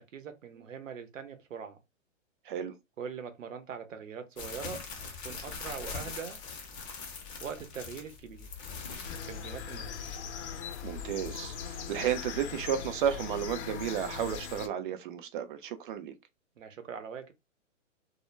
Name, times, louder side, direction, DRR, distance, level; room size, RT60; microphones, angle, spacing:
voice 1, 0.0-1.8 3.0-6.4 7.4-8.5 9.2-10.1 16.6-17.3, right 6 dB, 80° right, 0.8 m, -42 dB
sound 1, 4.4-10.2, left 5 dB, 20° left, 0.5 m, -42 dB
sound 2, 9.0-14.7, left 7 dB, 60° left, 0.6 m, -40 dB
voice 2, 10.8-16.1, right 9 dB, 45° right, 0.5 m, -33 dB
2.2 x 2.1 x 3.1 m
hypercardioid pair, 125°, 38 cm